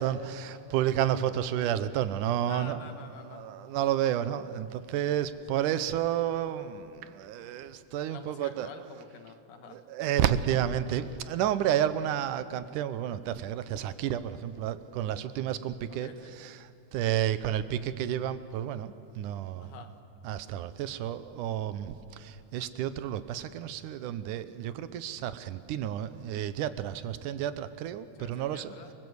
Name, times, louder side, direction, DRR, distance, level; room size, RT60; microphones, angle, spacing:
voice 1, 0.0-2.8 3.3-8.7 9.7-19.7 20.2-28.7, right 11 dB, 90° right, 13 dB, 2.4 m, -31 dB
voice 2, 2.4-3.5 5.1-5.6 8.1-9.8 15.9-16.3 19.6-19.9 21.6-21.9 28.1-28.9, left 7 dB, 85° left, 7 dB, 3.1 m, -48 dB
29.5 x 20.5 x 8.1 m, 2.8 s
omnidirectional pair, 3.5 m